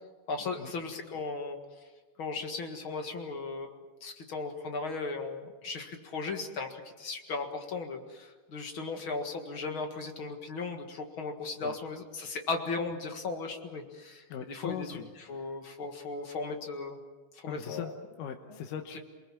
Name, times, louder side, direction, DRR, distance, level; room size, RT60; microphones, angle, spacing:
voice 1, 0.3-1.6 2.2-15.0 15.3-17.0 17.3-18.0, left 4 dB, 45° left, 4 dB, 2.3 m, -37 dB
voice 2, 14.3-15.6 17.5-19.0, left 9 dB, 85° left, 4 dB, 2.7 m, -40 dB
28.5 x 19.5 x 7.4 m, 1.3 s
omnidirectional pair, 3.7 m